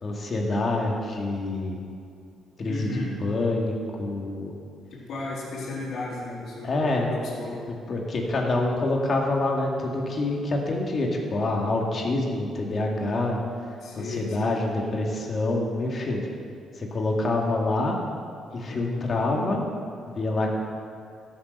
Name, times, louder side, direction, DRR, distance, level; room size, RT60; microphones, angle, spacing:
voice 1, 0.0-1.8 2.6-4.5 6.6-7.1 7.9-13.4 13.9-16.2 16.7-18.0 18.5-19.6 20.1-20.5, left 2 dB, 45° left, 0 dB, 2.2 m, -26 dB
voice 2, 2.7-3.1 4.9-6.7 7.1-7.6 13.8-14.6 18.6-19.0, left 2 dB, 70° left, -5 dB, 3.5 m, -34 dB
13.0 x 6.8 x 6.7 m, 2.3 s
cardioid pair, 90°, 0 cm